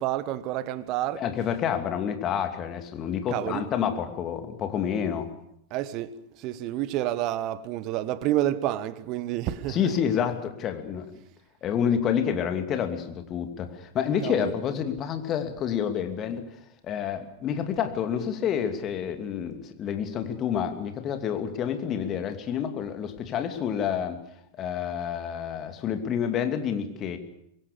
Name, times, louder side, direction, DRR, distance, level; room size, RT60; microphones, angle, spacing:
voice 1, 0.0-1.2 3.3-3.7 5.7-6.1 6.4-9.9 14.2-14.5, right 13 dB, 40° right, 1.4 m, -29 dB
voice 2, 1.1-5.3 9.7-11.1 11.6-16.4 16.8-24.2 24.6-27.2, left 8 dB, 30° left, 2.8 m, -28 dB
24.5 x 22.0 x 6.9 m
figure-of-eight pair, 90°, 0 cm